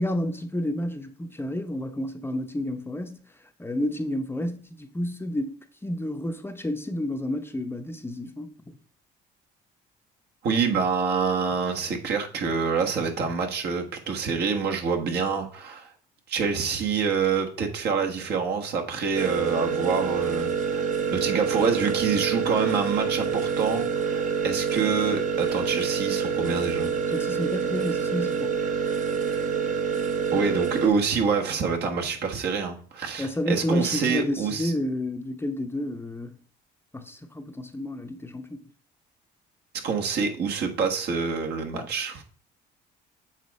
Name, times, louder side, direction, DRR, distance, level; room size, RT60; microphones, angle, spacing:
voice 1, 0.0-3.2 3.6-8.5 27.1-28.5 33.2-36.4 36.9-38.7 41.7-41.9, left 1 dB, 10° left, 0.7 m, -30 dB
voice 2, 10.4-15.9 16.3-26.9 30.3-34.7 39.8-42.2, right 5 dB, 60° right, 1.4 m, -26 dB
sound 1, 19.1-30.9, right 6 dB, 45° right, 1.0 m, -27 dB
7.3 x 3.6 x 5.2 m
cardioid pair, 95°, 19 cm